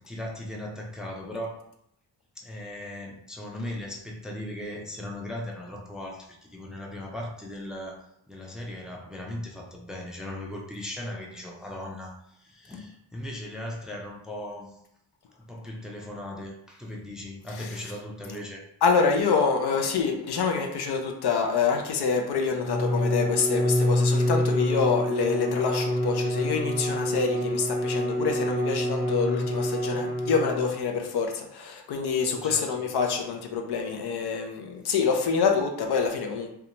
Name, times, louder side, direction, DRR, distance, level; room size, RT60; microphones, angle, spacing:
voice 1, 0.0-1.6 2.4-14.8 15.4-18.7 24.4-24.6 32.3-32.7, left 1 dB, ahead, 0 dB, 0.5 m, -38 dB
voice 2, 18.8-36.5, left 5 dB, 60° left, 3 dB, 0.6 m, -26 dB
Bowed string instrument, 22.5-30.8, equal, 40° left, 1.1 m, -27 dB
2.4 x 2.1 x 2.9 m, 0.76 s
supercardioid pair, 50°, 46 cm